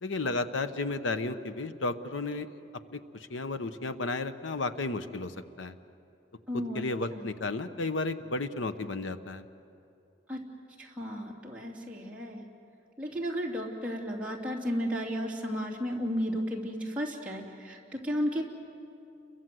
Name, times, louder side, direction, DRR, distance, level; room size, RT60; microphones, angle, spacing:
voice 1, 0.0-2.5 2.9-5.7 6.5-9.4, left 3 dB, 85° left, 10 dB, 1.0 m, -33 dB
voice 2, 6.5-6.8 7.1-7.2 10.3-10.4 10.8-12.5 13.0-18.4, equal, 5° right, -4 dB, 3.0 m, -33 dB
30.0 x 23.0 x 7.8 m, 2.7 s
head